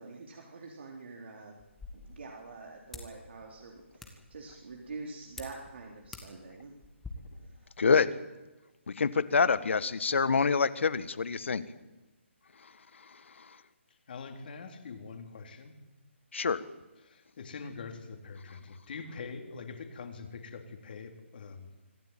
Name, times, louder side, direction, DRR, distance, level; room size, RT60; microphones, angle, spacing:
voice 1, 0.0-1.6 2.1-6.7 7.4-7.7, right 3 dB, 60° right, 0 dB, 3.7 m, -46 dB
sound 1, 1.6-7.1, left 3 dB, 5° left, 1.9 m, -50 dB
voice 2, 7.8-8.1 8.9-11.6 13.4-13.5 16.3-16.6, left 5 dB, 65° left, 14 dB, 1.6 m, -26 dB
voice 3, 13.9-15.8 17.0-21.7, left 4 dB, 45° left, 5 dB, 3.8 m, -44 dB
25.0 x 14.5 x 9.1 m, 1.1 s
hypercardioid pair, 160°, 7 cm